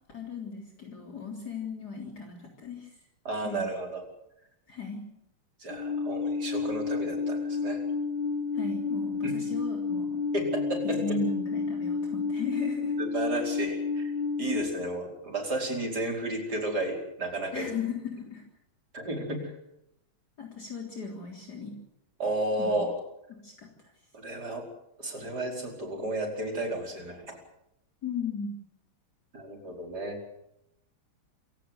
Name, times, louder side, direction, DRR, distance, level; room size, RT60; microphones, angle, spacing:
voice 1, 0.1-2.9 3.4-3.7 4.7-5.0 8.5-10.2 10.8-12.9 17.5-18.4 20.4-21.7 22.6-22.9 23.4-23.7 28.0-28.5, left 5 dB, 50° left, 0 dB, 4.2 m, -36 dB
voice 2, 3.3-4.0 5.6-7.8 9.2-9.3 10.3-11.2 13.0-14.1 14.4-17.7 18.9-19.5 22.2-23.0 24.2-24.7 25.0-27.4 29.3-30.2, right 1 dB, 50° right, 2 dB, 5.6 m, -32 dB
Alarm, 5.7-14.6, left 4 dB, 65° left, 8.1 m, -30 dB
27.0 x 17.0 x 8.3 m, 0.80 s
omnidirectional pair, 2.3 m